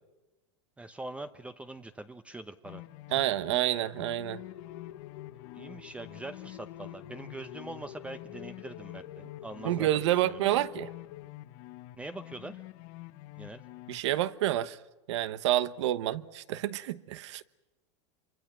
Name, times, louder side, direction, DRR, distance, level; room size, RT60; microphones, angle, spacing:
voice 1, 0.8-2.8 5.5-9.1 9.4-10.4 12.0-12.6 13.3-13.6, right 2 dB, 10° right, 0.8 m, -43 dB
sound 1, 2.6-14.0, left 17 dB, 50° left, 1.0 m, -48 dB
voice 2, 3.1-4.4 9.6-10.9 13.9-14.8 15.1-17.4, right 13 dB, 75° right, 1.1 m, -29 dB
sound 2, 4.0-11.3, left 12 dB, 85° left, 1.2 m, -48 dB
28.0 x 24.5 x 6.1 m
supercardioid pair, 135°, 15 cm